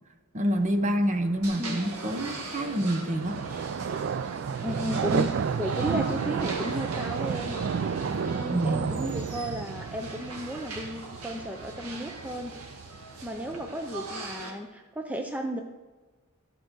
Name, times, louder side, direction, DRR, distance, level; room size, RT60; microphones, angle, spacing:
voice 1, 0.3-3.4 8.5-8.9, right 1 dB, 35° right, 7 dB, 0.9 m, -27 dB
sound 1, 0.5-14.4, right 6 dB, 55° right, 0.4 m, -33 dB
sound 2, 1.4-14.5, right 2 dB, 85° right, 1.7 m, -41 dB
voice 2, 4.6-7.6 8.3-12.5 13.2-15.6, equal, 5° right, 4 dB, 0.6 m, -34 dB
13.0 x 5.1 x 6.2 m, 1.3 s
head